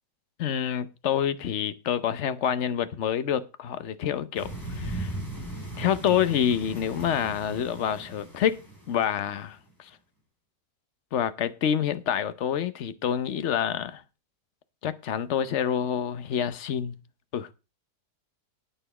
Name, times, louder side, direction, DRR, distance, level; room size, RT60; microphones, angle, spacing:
voice 1, 0.4-5.1 5.8-8.6 8.9-9.9 11.1-14.0 14.8-17.0 17.3-17.5, left 9 dB, 55° left, 0.9 m, -27 dB
sound 1, 4.3-9.4, right 1 dB, 10° left, 4.1 m, -38 dB
9.1 x 9.0 x 4.9 m
omnidirectional pair, 1.7 m